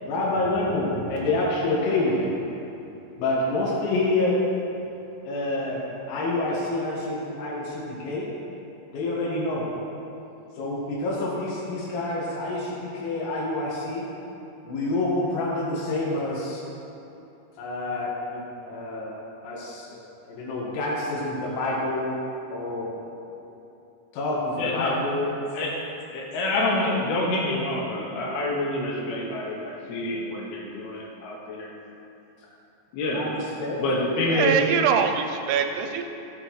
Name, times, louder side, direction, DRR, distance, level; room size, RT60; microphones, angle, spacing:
voice 1, 0.1-2.3 3.2-4.4 5.3-5.8 6.1-8.3 8.9-9.7 10.6-14.1 14.7-16.6 17.6-19.2 19.4-19.9 20.3-22.1 22.5-22.9 24.1-25.3 33.1-33.8, left 2 dB, 90° left, -6 dB, 4.5 m, -27 dB
voice 2, 24.6-25.0 25.5-25.8 26.1-31.7 32.9-33.3 33.8-34.5, left 2 dB, 65° left, -3 dB, 3.0 m, -27 dB
voice 3, 34.3-36.1, right 7 dB, 80° right, 6 dB, 3.2 m, -23 dB
17.0 x 9.2 x 3.2 m, 2.8 s
omnidirectional pair, 5.9 m